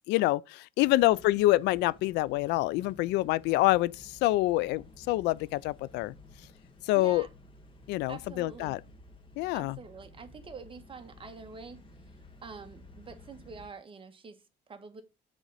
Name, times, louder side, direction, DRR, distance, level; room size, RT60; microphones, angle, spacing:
voice 1, 0.1-6.1 6.9-7.3 7.9-8.8 9.4-9.8, left 17 dB, 90° left, 0.4 m, -26 dB
sound 1, 0.8-13.7, left 2 dB, 30° left, 1.8 m, -54 dB
voice 2, 0.9-1.3 6.9-7.3 8.1-8.8 9.5-11.8 12.4-15.0, right 5 dB, 30° right, 1.3 m, -46 dB
8.1 x 3.8 x 5.5 m
cardioid pair, 110°, 17 cm